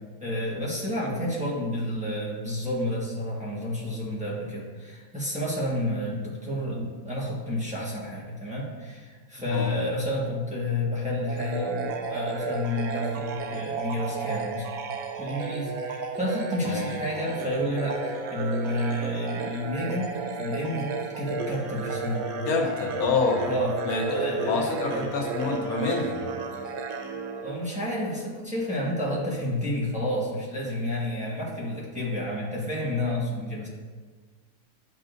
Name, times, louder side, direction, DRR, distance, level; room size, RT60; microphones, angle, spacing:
voice 1, 0.2-14.7 15.2-20.1 20.4-20.9 21.2-22.3 23.4-23.7 24.1-25.1 27.4-33.7, left 1 dB, 5° right, -6 dB, 1.4 m, -30 dB
sound 1, 11.3-28.0, right 4 dB, 80° right, 1.2 m, -33 dB
voice 2, 22.5-23.5 23.9-24.1 24.5-26.2, left 4 dB, 85° left, 2 dB, 1.4 m, -27 dB
11.0 x 4.7 x 2.6 m, 1.5 s
omnidirectional pair, 1.5 m